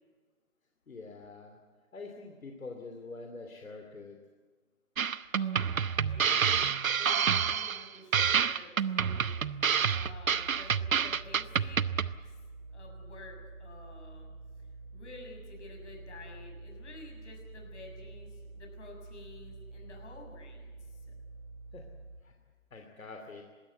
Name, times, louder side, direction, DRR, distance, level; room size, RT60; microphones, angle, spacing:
voice 1, 0.9-1.6 1.9-4.2 21.7-21.8 22.2-22.3 22.7-23.4, left 3 dB, 80° left, 3 dB, 2.9 m, -45 dB
sound 1, 5.0-12.1, right 7 dB, 80° right, 0.9 m, -28 dB
voice 2, 5.3-11.8 12.2-12.3 12.7-14.3 14.9-21.1, left 2 dB, 55° left, 3 dB, 6.9 m, -51 dB
sound 2, 9.9-22.2, right 3 dB, 15° right, 7.6 m, -48 dB
20.5 x 17.0 x 9.3 m, 1.4 s
hypercardioid pair, 155°, 40 cm